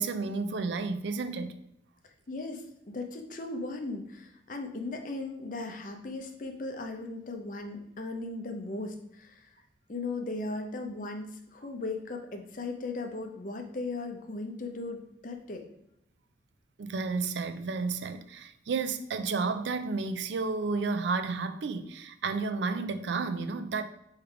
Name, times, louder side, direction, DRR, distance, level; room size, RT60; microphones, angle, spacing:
voice 1, 0.0-1.5 16.8-23.8, right 4 dB, 70° right, 0.4 m, -31 dB
voice 2, 2.0-9.5 9.9-15.6, left 2 dB, 45° left, 0.6 m, -37 dB
3.4 x 3.2 x 4.7 m
head